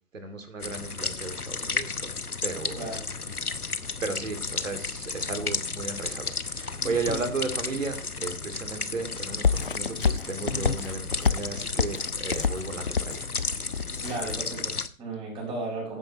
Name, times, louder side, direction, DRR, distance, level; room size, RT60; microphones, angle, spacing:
voice 1, 0.1-2.1 2.4-2.9 4.0-13.3, right 4 dB, 60° right, 7 dB, 2.6 m, -34 dB
sound 1, 0.6-14.9, left 4 dB, 85° left, 1.0 m, -33 dB
voice 2, 2.8-3.3 14.0-16.0, right 3 dB, 10° right, -1 dB, 4.5 m, -35 dB
sound 2, 9.4-14.4, left 5 dB, 40° left, 0.4 m, -28 dB
15.5 x 8.9 x 3.0 m, 0.39 s
figure-of-eight pair, 135°, 44 cm